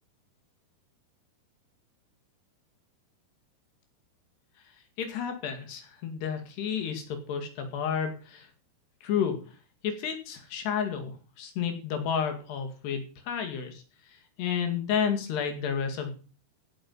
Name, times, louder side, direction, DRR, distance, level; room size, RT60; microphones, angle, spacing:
voice 1, 5.0-8.5 9.0-9.4 9.8-16.1, left 7 dB, 80° left, 6 dB, 4.3 m, -31 dB
15.5 x 8.7 x 5.6 m, 0.37 s
omnidirectional pair, 4.7 m